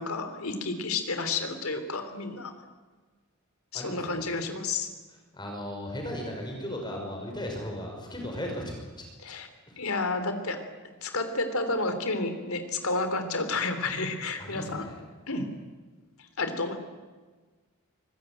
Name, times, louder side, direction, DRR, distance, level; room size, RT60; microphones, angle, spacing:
voice 1, 0.0-2.5 3.7-4.9 9.2-9.5 9.8-14.9 15.3-15.5 16.2-16.8, left 3 dB, 80° left, 8 dB, 3.4 m, -31 dB
voice 2, 3.7-4.3 5.3-9.1 14.4-15.0, left 1 dB, 20° left, 1 dB, 5.6 m, -36 dB
24.5 x 21.0 x 9.2 m, 1.4 s
head